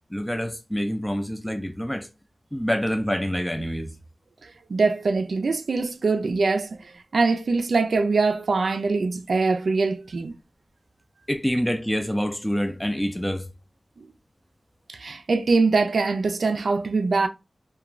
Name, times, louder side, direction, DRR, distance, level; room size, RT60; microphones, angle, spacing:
voice 1, 0.1-2.1 2.5-3.9 11.3-13.5, equal, 10° left, 0.3 m, -26 dB
voice 2, 4.4-10.3 14.0-14.1 14.9-17.3, right 3 dB, 85° right, 0.3 m, -23 dB
2.4 x 2.2 x 3.0 m
wide cardioid pair, 75°, 0 cm